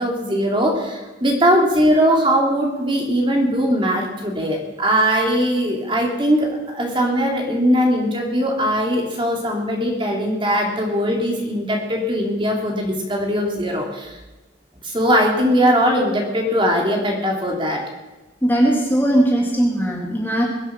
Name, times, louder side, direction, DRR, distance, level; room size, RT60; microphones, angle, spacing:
voice 1, 0.0-14.2 14.8-17.8, equal, 25° right, 0 dB, 2.8 m, -20 dB
voice 2, 18.4-20.4, right 1 dB, 10° left, -1 dB, 2.2 m, -18 dB
22.5 x 8.1 x 5.9 m, 1.1 s
head